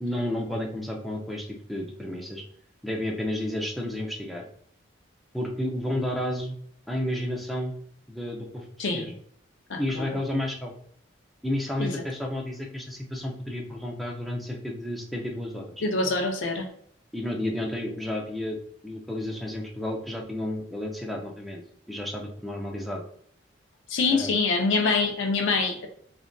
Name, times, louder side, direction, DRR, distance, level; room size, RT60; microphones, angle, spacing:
voice 1, 0.0-2.4 2.8-4.4 5.3-6.6 6.9-7.7 8.1-8.7 8.9-9.1 9.8-10.7 11.4-15.6 17.1-18.6 18.8-21.6 21.9-23.0 24.1-24.3, left 1 dB, ahead, 0.4 m, -31 dB
voice 2, 8.8-9.1 9.7-10.1 11.8-11.9 15.8-16.7 23.9-25.9, left 3 dB, 75° left, 0.5 m, -25 dB
3.5 x 2.4 x 2.2 m
head